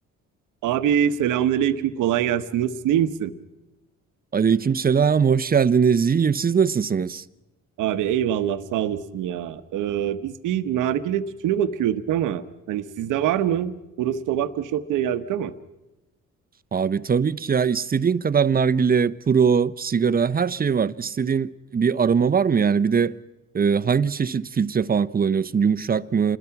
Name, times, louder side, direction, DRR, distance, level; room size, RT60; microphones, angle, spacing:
voice 1, 0.6-3.3 7.8-15.5, right 10 dB, 90° right, 1.1 m, -24 dB
voice 2, 4.3-7.2 16.7-23.2 23.5-26.4, right 6 dB, 30° right, 0.7 m, -21 dB
27.5 x 21.0 x 5.9 m
cardioid pair, 90°, 30 cm